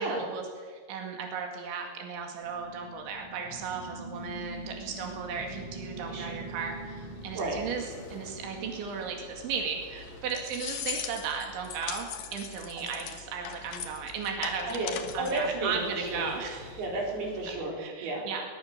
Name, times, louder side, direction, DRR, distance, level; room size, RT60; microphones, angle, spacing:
voice 1, 0.0-14.8 15.1-16.8 17.8-18.4, right 6 dB, 85° right, 2 dB, 4.6 m, -36 dB
sound 1, 2.4-10.2, right 2 dB, 30° right, 3.1 m, -44 dB
sound 2, 4.1-17.6, left 2 dB, 40° left, 3.0 m, -50 dB
voice 2, 6.0-6.4 7.3-7.6 12.8-12.9 14.7-16.3 16.8-18.2, right 2 dB, 60° right, -1 dB, 6.2 m, -32 dB
sound 3, 10.0-15.5, left 9 dB, 60° left, 2.7 m, -39 dB
22.0 x 20.0 x 6.8 m, 1.6 s
omnidirectional pair, 5.2 m